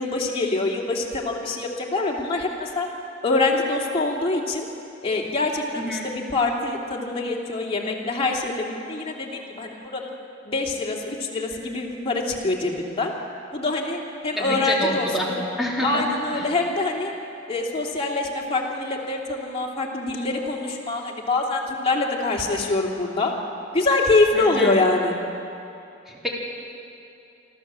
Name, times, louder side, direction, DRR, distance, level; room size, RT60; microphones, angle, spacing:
voice 1, 0.0-2.9 3.2-4.7 5.0-10.1 10.4-13.1 13.5-15.1 15.8-17.1 17.5-23.3 23.7-25.2, left 3 dB, 30° left, -1 dB, 2.7 m, -25 dB
voice 2, 14.4-15.3 15.6-16.0 16.3-16.4 24.3-24.8 26.1-26.3, equal, ahead, -4 dB, 3.7 m, -27 dB
25.5 x 14.0 x 7.5 m, 2.7 s
head